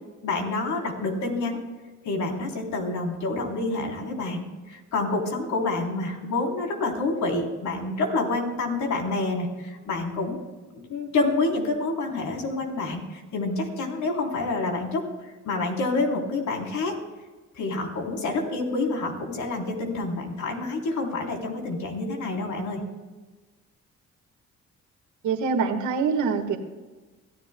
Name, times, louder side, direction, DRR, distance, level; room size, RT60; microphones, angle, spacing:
voice 1, 0.2-1.6 2.0-10.4 10.9-15.0 15.5-17.0 17.6-22.8 26.3-26.4, left 3 dB, 75° left, 1 dB, 3.6 m, -28 dB
voice 2, 25.2-26.6, right 5 dB, 80° right, 5 dB, 1.6 m, -24 dB
25.0 x 14.5 x 2.2 m, 1.3 s
cardioid pair, 90°, 30 cm